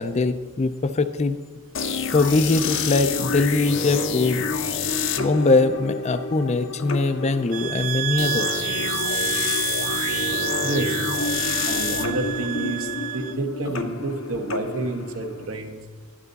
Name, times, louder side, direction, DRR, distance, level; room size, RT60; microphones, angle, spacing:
voice 1, 0.0-1.4 2.1-4.5 5.2-8.6, left 3 dB, 30° left, 11 dB, 0.4 m, -22 dB
sound 1, 1.7-15.5, left 5 dB, 60° left, 0.8 m, -28 dB
sound 2, 7.5-13.4, right 13 dB, 40° right, 0.4 m, -29 dB
voice 2, 10.6-11.0 11.7-15.8, right 2 dB, 75° right, 4 dB, 1.3 m, -29 dB
12.0 x 11.0 x 4.0 m, 1.4 s
head